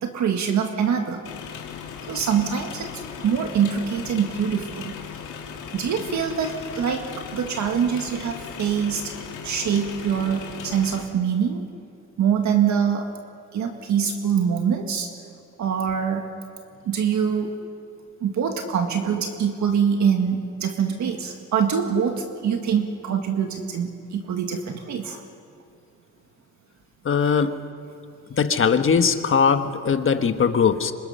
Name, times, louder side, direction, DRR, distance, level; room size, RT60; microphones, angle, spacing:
voice 1, 0.0-1.2 2.1-4.9 5.7-7.1 7.3-9.1 9.4-11.7 12.2-13.1 13.5-15.1 15.6-16.2 16.8-17.5 18.2-25.2 27.2-27.3, right 7 dB, 70° right, 4 dB, 1.8 m, -24 dB
sound 1, 1.2-11.1, left 6 dB, 80° left, 2.5 m, -37 dB
voice 2, 27.0-27.6 28.4-30.9, left 6 dB, 45° left, 8 dB, 1.4 m, -20 dB
26.5 x 25.0 x 5.7 m, 2.4 s
cardioid pair, 90°, 30 cm